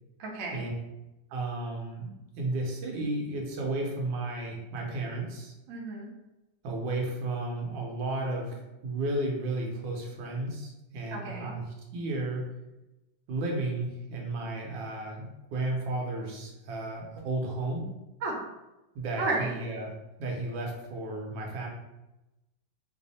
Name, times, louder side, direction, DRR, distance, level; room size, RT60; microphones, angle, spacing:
voice 1, 0.2-0.6 5.7-6.1 11.1-11.5 18.2-18.4 19.2-19.6, right 2 dB, 60° right, -2 dB, 0.9 m, -32 dB
voice 2, 1.3-2.1 2.4-5.5 6.6-11.6 11.9-12.5 13.3-17.9 18.9-19.9 20.2-21.7, right 2 dB, 80° right, 0 dB, 1.4 m, -33 dB
3.4 x 2.0 x 4.0 m, 0.97 s
omnidirectional pair, 2.0 m